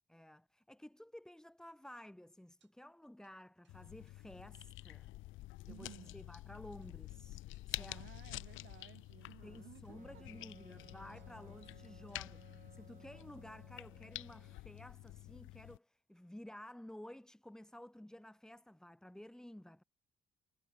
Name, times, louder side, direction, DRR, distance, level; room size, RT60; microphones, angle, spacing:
voice 1, 0.1-5.1 5.7-8.1 9.4-19.8, left 1 dB, 5° left, 0.6 m, -54 dB
sound 1, 2.5-2.7 3.2-3.4 3.6-3.8 4.1-4.7 5.1-5.2 5.6-5.8 6.3-6.4 6.8-7.2 7.5-8.2 8.6-9.4 9.7-10.7 11.1-11.4 11.6-12.4 12.8-12.9, right 10 dB, 65° right, 5.2 m, -83 dB
sound 2, 3.7-15.8, left 17 dB, 80° left, 0.5 m, -49 dB
voice 2, 5.7-6.1 7.7-10.2, right 15 dB, 80° right, 0.9 m, -57 dB
Wind instrument woodwind instrument, 10.0-14.6, right 7 dB, 40° right, 1.3 m, -61 dB
cardioid pair, 90°, 20 cm